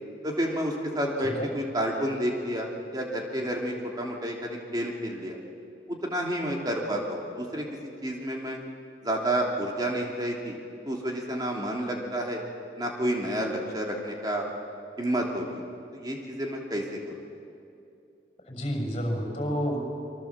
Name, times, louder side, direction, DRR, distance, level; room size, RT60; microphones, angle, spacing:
voice 1, 0.2-5.4 5.9-7.7 8.0-8.6 9.0-10.6 10.8-12.4 12.8-14.5 15.0-15.6 15.9-17.0, right 1 dB, 20° right, 0 dB, 3.0 m, -30 dB
voice 2, 18.5-19.8, equal, 30° left, 2 dB, 6.2 m, -30 dB
27.5 x 24.0 x 7.5 m, 2.6 s
head